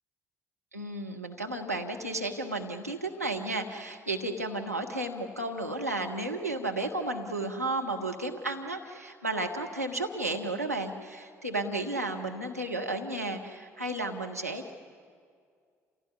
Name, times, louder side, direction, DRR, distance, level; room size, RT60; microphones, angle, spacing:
voice 1, 0.7-14.7, right 2 dB, 90° right, 2 dB, 1.0 m, -33 dB
28.0 x 16.5 x 9.7 m, 2.1 s
figure-of-eight pair, 50°, 8 cm